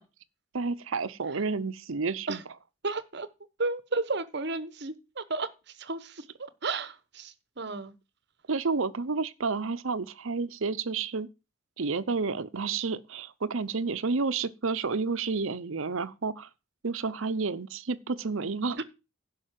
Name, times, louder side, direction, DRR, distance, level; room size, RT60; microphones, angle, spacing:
voice 1, 0.5-2.4 8.5-11.3 11.8-16.5 16.8-18.8, right 4 dB, 70° right, 0.7 m, -30 dB
voice 2, 2.8-3.3 3.6-5.5 5.8-7.9, right 3 dB, 50° right, 1.1 m, -33 dB
11.5 x 5.6 x 7.4 m
head